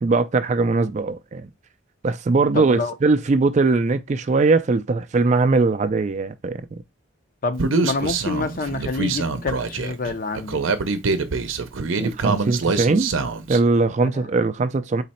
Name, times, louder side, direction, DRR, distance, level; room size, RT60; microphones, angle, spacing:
voice 1, 0.0-1.5 2.0-6.6 12.0-13.1 13.5-15.0, right 3 dB, 35° right, 0.3 m, -20 dB
voice 2, 2.5-3.0 7.4-10.7 14.0-14.3, left 3 dB, 45° left, 0.5 m, -27 dB
Human voice, 7.6-13.6, right 4 dB, 80° right, 0.6 m, -24 dB
4.0 x 3.1 x 4.2 m
head